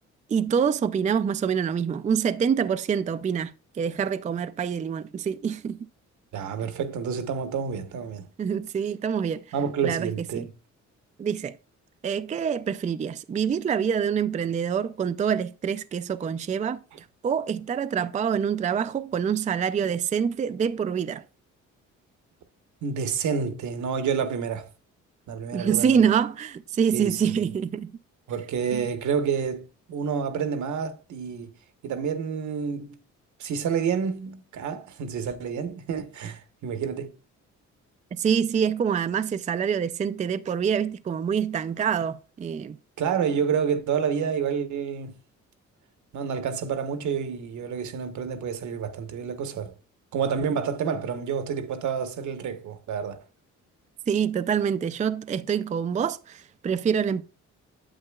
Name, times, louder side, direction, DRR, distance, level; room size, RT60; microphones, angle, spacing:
voice 1, 0.3-5.8 8.4-9.5 9.8-10.5 11.2-11.6 12.0-21.2 25.5-27.9 28.7-28.9 38.1-42.8 54.1-57.2, right 7 dB, 25° right, 0.4 m, -26 dB
voice 2, 6.3-8.3 9.5-10.5 22.8-24.7 25.3-26.0 26.9-27.3 28.3-31.5 31.8-33.0 33.4-37.1 43.0-45.2 46.1-49.7 50.1-53.2, right 7 dB, 75° right, 1.1 m, -29 dB
8.9 x 7.7 x 2.3 m
cardioid pair, 90°, 30 cm